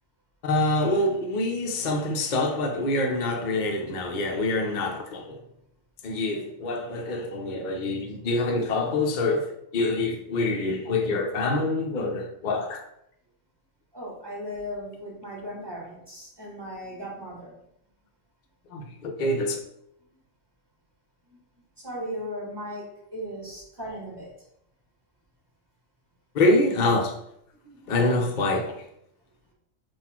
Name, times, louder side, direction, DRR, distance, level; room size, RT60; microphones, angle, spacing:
voice 1, 0.4-5.4 6.0-12.8 18.7-19.6 26.3-27.2 27.9-28.8, left 2 dB, 50° left, 0.6 m, -26 dB
voice 2, 13.9-17.6 21.3-21.4 21.8-24.3 27.6-27.9, equal, 20° right, 1.7 m, -37 dB
4.0 x 2.5 x 4.3 m
omnidirectional pair, 1.3 m